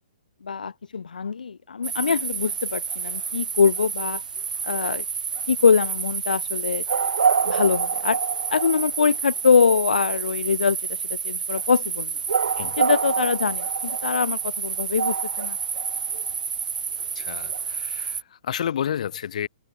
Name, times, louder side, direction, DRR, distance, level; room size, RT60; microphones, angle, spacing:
voice 1, 0.4-4.2 4.6-5.0 5.5-6.9 7.4-8.2 8.5-12.1 12.8-15.6, left 5 dB, 85° left, 0.8 m, -23 dB
sound 1, 1.8-18.2, right 6 dB, 80° right, 1.6 m, -27 dB
voice 2, 17.1-19.5, left 9 dB, 60° left, 2.5 m, -30 dB
hypercardioid pair, 145°, 4 cm